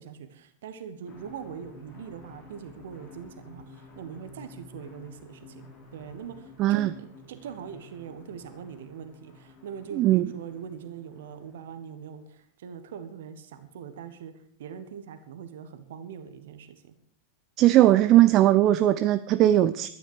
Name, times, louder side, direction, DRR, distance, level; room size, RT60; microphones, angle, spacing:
voice 1, 0.0-14.3 14.6-16.9, right 7 dB, 60° right, 10 dB, 1.4 m, -42 dB
sound 1, 1.1-12.2, left 2 dB, 35° left, 5.2 m, -51 dB
voice 2, 6.6-6.9 9.9-10.3 17.6-19.9, right 14 dB, 35° right, 13 dB, 0.5 m, -19 dB
13.0 x 10.0 x 6.6 m, 0.64 s
figure-of-eight pair, 90°, 0 cm